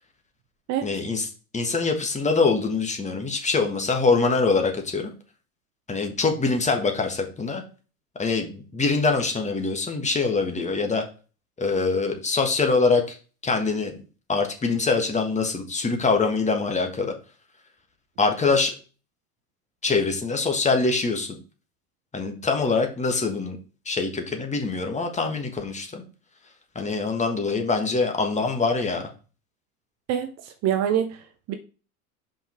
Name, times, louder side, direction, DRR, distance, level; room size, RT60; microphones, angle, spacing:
voice 1, 0.8-1.3 1.5-5.1 5.9-7.6 8.2-11.0 11.6-13.2 13.4-13.9 14.3-17.1 18.2-18.7 19.8-21.4 22.1-23.6 23.8-26.0 26.7-29.1, left 4 dB, 15° left, 1.5 m, -24 dB
voice 2, 30.1-31.6, right 9 dB, 35° right, 0.8 m, -26 dB
5.5 x 5.4 x 4.4 m
figure-of-eight pair, 80°, 45 cm